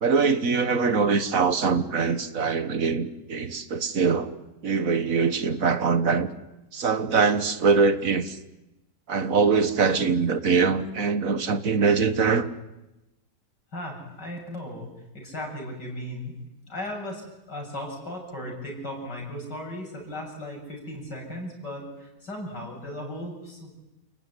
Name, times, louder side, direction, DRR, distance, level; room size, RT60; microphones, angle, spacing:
voice 1, 0.0-4.3 4.6-6.3 6.7-8.4 9.1-12.5, right 5 dB, 50° right, 11 dB, 1.8 m, -23 dB
voice 2, 13.7-16.3 16.7-23.7, left 1 dB, 80° left, 1 dB, 8.1 m, -36 dB
29.5 x 19.5 x 9.9 m, 0.98 s
omnidirectional pair, 1.8 m